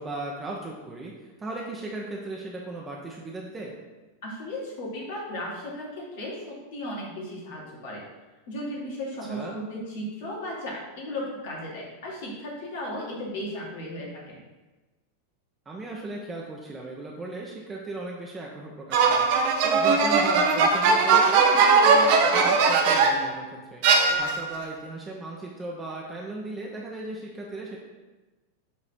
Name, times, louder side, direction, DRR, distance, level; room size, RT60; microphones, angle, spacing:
voice 1, 0.0-3.7 9.3-9.6 15.7-27.8, right 2 dB, 15° right, -2 dB, 0.7 m, -37 dB
voice 2, 4.2-8.0 8.5-14.4, left 1 dB, 55° left, -3 dB, 1.8 m, -35 dB
sound 1, 18.9-23.3 23.8-24.6, right 4 dB, 45° right, 0.7 m, -20 dB
7.3 x 3.1 x 4.4 m, 1.2 s
figure-of-eight pair, 90°, 0 cm